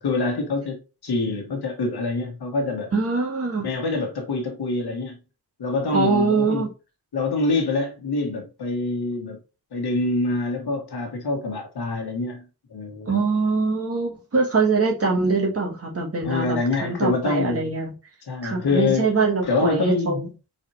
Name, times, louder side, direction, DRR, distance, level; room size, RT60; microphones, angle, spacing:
voice 1, 0.0-2.9 3.6-5.2 5.6-6.7 7.1-9.4 9.7-12.4 12.7-13.2 16.2-17.7 18.3-19.1 19.4-20.2, left 3 dB, 85° left, 1.5 m, -25 dB
voice 2, 2.9-3.6 5.9-6.7 13.0-17.9 18.4-20.3, right 4 dB, 40° right, 1.3 m, -23 dB
4.4 x 4.0 x 2.8 m
wide cardioid pair, 175°, 38 cm